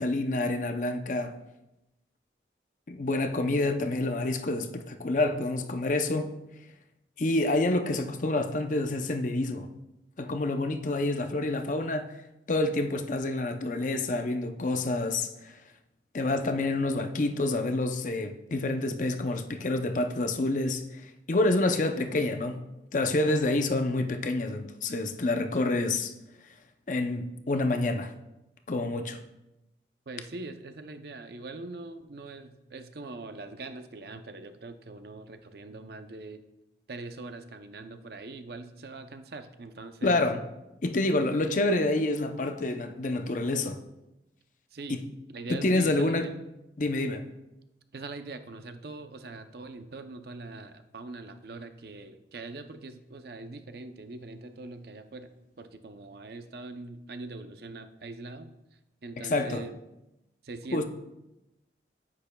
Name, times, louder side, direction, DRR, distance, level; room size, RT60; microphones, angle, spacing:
voice 1, 0.0-1.4 2.9-6.3 7.2-9.7 10.2-12.1 12.5-15.6 16.1-22.6 22.9-26.1 26.9-28.1 28.7-29.2 40.0-40.4 40.8-43.8 44.9-45.0 45.5-46.3 46.8-47.3 59.2-59.6 60.7-60.8, left 2 dB, 45° left, 0.5 m, -28 dB
voice 2, 30.1-36.4 36.9-40.3 41.2-41.4 44.7-45.0 45.3-46.3 47.9-55.3 55.6-58.5 59.0-59.8 60.4-60.8, right 3 dB, 55° right, 0.6 m, -42 dB
9.7 x 8.9 x 2.3 m
head